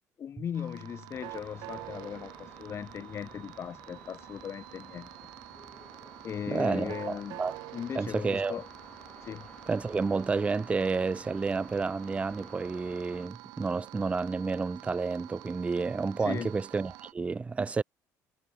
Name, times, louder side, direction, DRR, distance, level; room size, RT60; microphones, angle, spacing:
voice 1, 0.2-5.1 6.2-7.4 7.7-8.7 9.2-9.5 16.2-16.5, left 8 dB, 40° left, 0.5 m, -38 dB
sound 1, 0.5-17.1, right 21 dB, 85° right, 1.4 m, -48 dB
sound 2, 1.1-13.3, left 3 dB, 15° left, 6.8 m, -53 dB
voice 2, 6.5-7.5 7.9-8.6 9.7-17.8, right 4 dB, 20° right, 0.5 m, -30 dB
cardioid pair, 105°, 7 cm